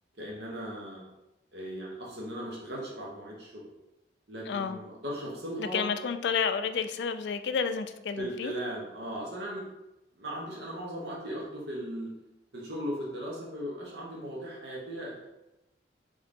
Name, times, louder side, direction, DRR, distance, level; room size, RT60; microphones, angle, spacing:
voice 1, 0.2-1.1 1.5-3.7 4.3-5.9 8.2-9.6 10.2-12.1 12.5-15.3, equal, 60° right, 1.0 m, -37 dB
voice 2, 4.5-4.8 5.6-8.5, left 6 dB, 70° left, 0.3 m, -30 dB
3.7 x 3.6 x 3.5 m
head